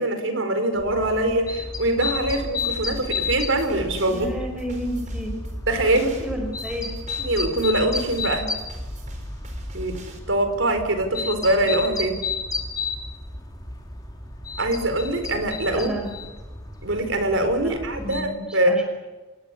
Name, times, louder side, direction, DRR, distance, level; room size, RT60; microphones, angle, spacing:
voice 1, 0.0-4.3 5.7-6.1 7.2-8.5 9.7-10.0 10.3-12.2 14.6-15.9 16.8-18.8, right 1 dB, 70° right, 8 dB, 4.6 m, -23 dB
sound 1, 0.8-18.2, left 4 dB, 20° left, 3.9 m, -33 dB
sound 2, 2.2-10.2, equal, 35° right, 4.6 m, -37 dB
voice 2, 4.1-5.3 5.8-6.9 15.7-16.1 17.6-17.7 18.0-18.9, equal, 5° right, 3 dB, 5.6 m, -32 dB
27.5 x 20.5 x 8.5 m, 1.2 s
head